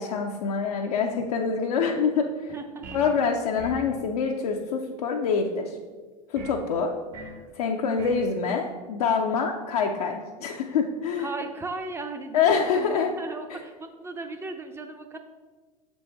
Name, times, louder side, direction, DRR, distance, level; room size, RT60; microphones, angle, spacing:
voice 1, 0.0-2.2 2.9-5.8 6.3-6.9 7.6-11.3 12.3-13.1 13.5-13.6, left 5 dB, 70° left, 1 dB, 0.5 m, -25 dB
voice 2, 2.5-3.0 11.2-15.2, right 3 dB, 10° right, 6 dB, 0.5 m, -36 dB
sound 1, 2.8-3.2 3.6-3.9 6.4-6.6 7.1-7.4 8.0-8.3, right 3 dB, 40° right, 0.9 m, -41 dB
6.7 x 4.1 x 3.4 m, 1.4 s
figure-of-eight pair, 85°, 20 cm